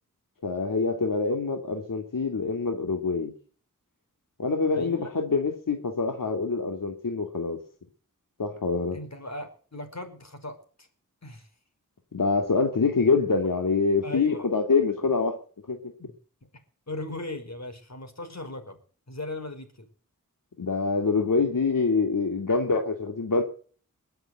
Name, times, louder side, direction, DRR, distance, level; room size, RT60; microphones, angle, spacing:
voice 1, 0.4-3.3 4.4-7.6 8.4-9.0 12.1-15.4 15.7-15.8 20.6-23.4, left 4 dB, 75° left, 4 dB, 2.7 m, -25 dB
voice 2, 4.7-5.1 8.9-10.9 11.2-11.5 14.0-14.4 16.0-16.1 16.9-18.8 19.1-19.9, left 1 dB, 55° left, 7 dB, 5.4 m, -38 dB
22.0 x 7.9 x 7.9 m, 0.44 s
cardioid pair, 45°, 33 cm